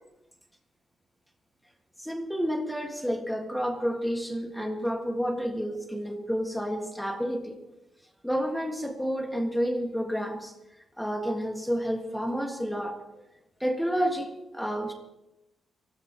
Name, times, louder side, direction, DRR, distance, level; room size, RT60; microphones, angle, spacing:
voice 1, 2.0-7.6 8.2-10.5 11.0-13.0 13.6-14.9, equal, ahead, 3 dB, 1.8 m, -30 dB
24.0 x 17.5 x 3.0 m, 0.94 s
wide cardioid pair, 165°, 0 cm